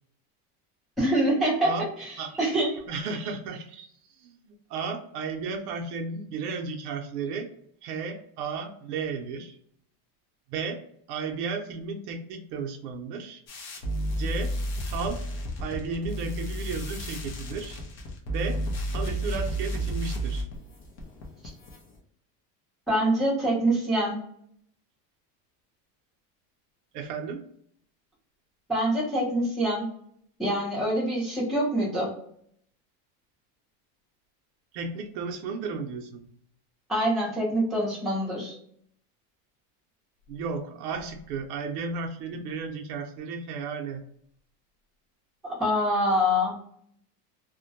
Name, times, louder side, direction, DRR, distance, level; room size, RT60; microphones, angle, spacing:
voice 1, 1.0-1.7 2.0-2.7 22.9-24.2 28.7-29.9 30.4-32.1 36.9-38.5 45.4-46.7, equal, ahead, -8 dB, 0.7 m, -25 dB
voice 2, 2.9-3.9 4.2-7.5 7.8-9.6 10.5-10.8 11.1-13.4 14.2-14.5 14.9-15.2 15.6-17.8 18.3-18.6 18.9-20.5 26.9-27.4 34.7-36.3 40.3-44.0, right 4 dB, 75° right, 4 dB, 0.6 m, -34 dB
sound 1, 13.5-22.0, right 1 dB, 40° left, 0.5 m, -32 dB
2.1 x 2.1 x 2.7 m, 0.66 s
supercardioid pair, 165°, 47 cm